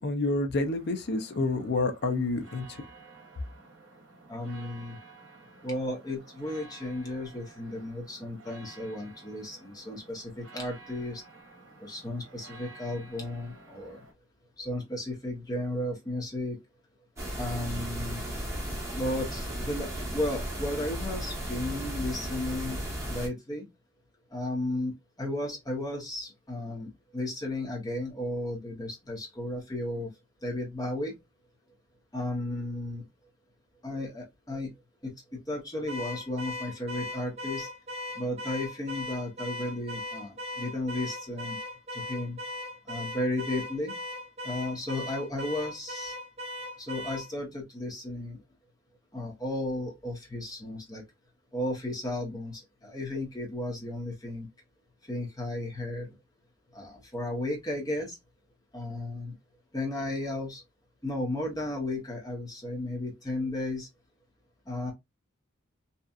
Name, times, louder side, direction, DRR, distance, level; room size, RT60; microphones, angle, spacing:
voice 1, 0.0-2.8, left 2 dB, 50° left, 0.5 m, -28 dB
sound 1, 0.6-14.1, right 3 dB, 60° right, 0.9 m, -52 dB
voice 2, 4.3-5.0 5.6-11.2 11.8-14.0 14.6-16.6 17.4-18.2 18.9-22.8 23.1-23.6 24.3-30.1 30.4-31.1 32.1-33.0 33.8-34.7 35.0-37.7 38.1-41.6 41.9-42.4 42.9-43.9 44.4-46.2 46.8-48.4 49.1-51.0 51.5-54.5 55.0-56.1 56.7-58.2 58.7-59.3 59.7-60.6 61.0-63.9 64.7-64.9, left 1 dB, 20° left, 0.9 m, -34 dB
sound 2, 17.2-23.3, equal, 15° right, 1.0 m, -35 dB
Car / Alarm, 35.9-47.3, left 1 dB, 30° right, 0.5 m, -38 dB
2.8 x 2.3 x 2.3 m
head